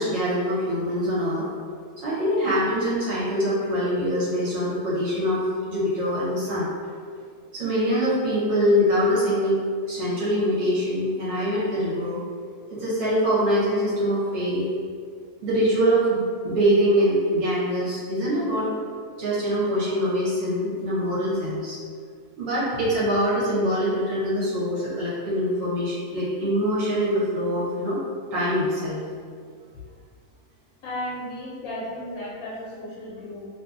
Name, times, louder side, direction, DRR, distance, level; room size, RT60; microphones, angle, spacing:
voice 1, 0.0-1.5 2.0-5.4 5.7-6.7 7.5-9.6 9.9-12.2 12.7-14.7 15.4-18.7 19.2-21.8 22.4-28.0 28.3-29.0, equal, 75° right, -9 dB, 1.2 m, -24 dB
voice 2, 30.8-33.5, left 1 dB, 85° left, -6 dB, 1.0 m, -34 dB
2.7 x 2.6 x 2.4 m, 2.2 s
omnidirectional pair, 1.4 m